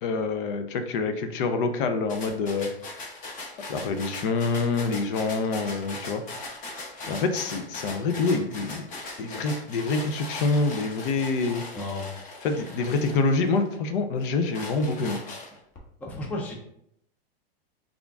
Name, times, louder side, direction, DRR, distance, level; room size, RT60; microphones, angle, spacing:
voice 1, 0.0-2.7 3.7-6.2 7.1-8.9 9.2-11.6 12.4-15.2, left 3 dB, 60° left, 8 dB, 0.5 m, -26 dB
sound 1, 2.1-13.8 14.2-15.8, left 2 dB, 25° left, 0.8 m, -40 dB
voice 2, 11.7-12.1 12.5-12.8 16.0-16.5, left 2 dB, 5° left, -1 dB, 0.4 m, -34 dB
3.6 x 2.4 x 3.4 m, 0.74 s
hypercardioid pair, 130°, 31 cm